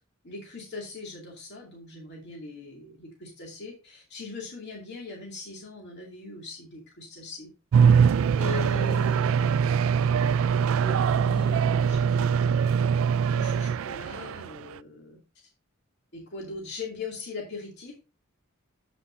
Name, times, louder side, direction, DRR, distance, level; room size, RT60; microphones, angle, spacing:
voice 1, 0.2-7.5 7.9-8.0 8.4-9.6 10.8-15.2 16.1-17.9, left 2 dB, 55° left, -1 dB, 2.5 m, -40 dB
sound 1, 7.7-14.8, right 7 dB, 70° right, 0.3 m, -23 dB
9.6 x 8.2 x 2.6 m, 0.32 s
head